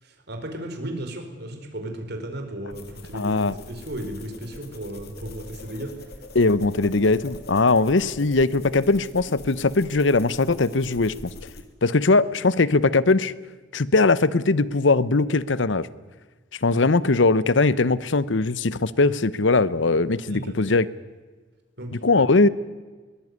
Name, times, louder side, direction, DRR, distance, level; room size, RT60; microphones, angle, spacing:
voice 1, 0.0-5.9 20.3-20.6 21.8-22.0, right 1 dB, 60° right, 4 dB, 4.6 m, -35 dB
sound 1, 2.7-11.6, left 2 dB, 60° left, 2.9 m, -43 dB
voice 2, 3.1-3.5 6.3-11.1 11.8-13.3 13.7-15.9 16.6-20.9 21.9-22.5, left 3 dB, 75° left, 18 dB, 0.9 m, -20 dB
22.0 x 20.0 x 9.6 m, 1.3 s
head